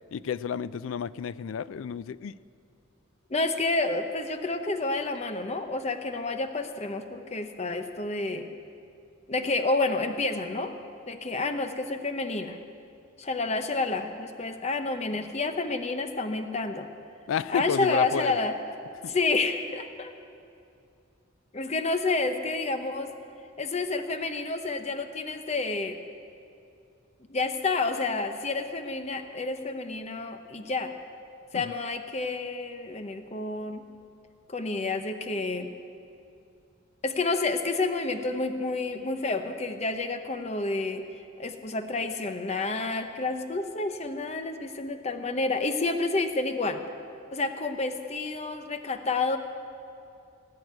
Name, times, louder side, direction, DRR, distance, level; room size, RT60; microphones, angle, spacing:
voice 1, 0.1-2.3 17.3-18.4 31.5-31.6, left 7 dB, 70° left, 17 dB, 0.3 m, -31 dB
voice 2, 3.3-8.5 9.3-10.7 11.1-12.6 13.2-16.9 17.5-18.5 19.1-20.1 21.5-23.1 23.6-26.0 27.3-30.9 31.5-33.9 34.5-35.7 37.0-41.0 41.4-46.8 47.3-49.4, left 3 dB, 30° left, 7 dB, 0.8 m, -29 dB
18.0 x 6.4 x 9.5 m, 2.5 s
head